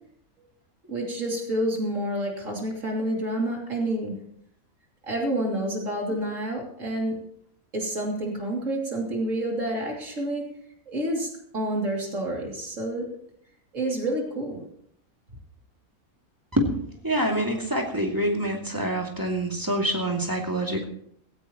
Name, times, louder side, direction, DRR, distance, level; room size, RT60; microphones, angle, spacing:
voice 1, 0.8-4.2 5.0-7.2 7.7-10.5 10.9-13.1 13.7-14.6, right 1 dB, 60° right, -1 dB, 3.3 m, -29 dB
voice 2, 17.0-20.8, right 1 dB, 15° right, 0 dB, 2.5 m, -26 dB
16.5 x 16.0 x 3.0 m, 0.67 s
omnidirectional pair, 1.5 m